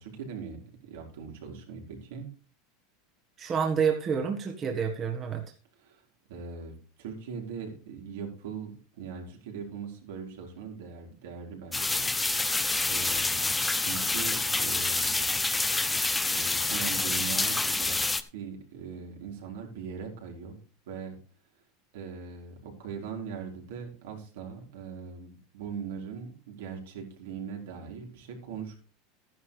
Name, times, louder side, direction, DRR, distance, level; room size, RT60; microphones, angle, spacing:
voice 1, 0.0-2.3 5.8-6.0 6.3-12.1 12.9-15.4 15.8-16.0 16.3-18.0 18.3-20.6 20.9-21.1 21.9-28.8, right 6 dB, 80° right, 1 dB, 4.4 m, -40 dB
voice 2, 3.4-5.4, right 6 dB, 30° right, 2 dB, 1.5 m, -28 dB
sound 1, 11.7-18.2, left 3 dB, 10° left, 0.7 m, -27 dB
13.0 x 11.0 x 3.3 m, 0.35 s
supercardioid pair, 135°, 0 cm